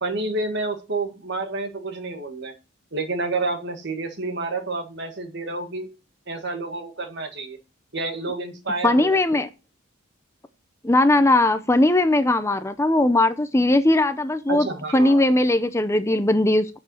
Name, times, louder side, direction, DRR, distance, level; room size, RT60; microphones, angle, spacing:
voice 1, 0.0-2.5 2.9-5.9 6.3-7.6 7.9-9.4 14.5-15.3, right 3 dB, 55° right, 1.8 m, -29 dB
voice 2, 8.8-9.5 10.8-14.7 14.9-16.8, left 1 dB, 15° left, 0.5 m, -19 dB
8.4 x 7.0 x 6.2 m
head